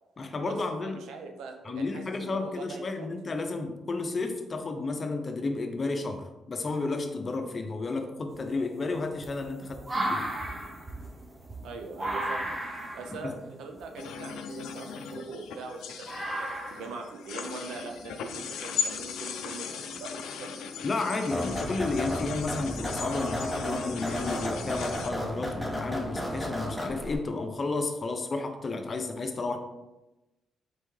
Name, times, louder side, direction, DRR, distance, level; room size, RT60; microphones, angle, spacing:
voice 1, 0.2-1.0 1.6-10.3 13.2-13.3 20.8-29.6, left 3 dB, 40° left, 5 dB, 0.6 m, -32 dB
voice 2, 0.8-3.1 11.6-12.5 12.9-20.6, right 4 dB, 85° right, 4 dB, 0.6 m, -42 dB
sound 1, 8.3-15.7 16.1-17.0 18.3-18.4 19.7-19.8 22.4-22.7 23.2-23.5 24.1-24.7 25.3-25.4 26.4-26.5 26.9-27.0, right 1 dB, 25° right, 0.8 m, -36 dB
sound 2, 14.0-25.1, left 6 dB, 85° left, 0.4 m, -38 dB
sound 3, 21.3-27.2, equal, 5° right, 1.0 m, -33 dB
4.5 x 3.4 x 3.2 m, 1.0 s
cardioid pair, 75°, 0 cm